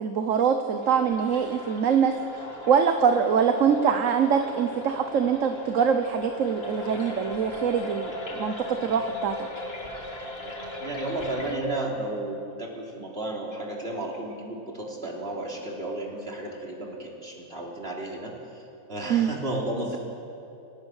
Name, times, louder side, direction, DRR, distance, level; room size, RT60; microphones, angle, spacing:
voice 1, 0.0-2.2 2.7-9.4 19.1-19.3, right 7 dB, 60° right, 7 dB, 1.3 m, -24 dB
sound 1, 0.8-11.5, left 1 dB, 40° left, 2.7 m, -38 dB
voice 2, 10.8-18.3 18.9-20.0, right 1 dB, 40° right, -1 dB, 3.7 m, -33 dB
28.0 x 18.5 x 6.5 m, 2.8 s
omnidirectional pair, 1.5 m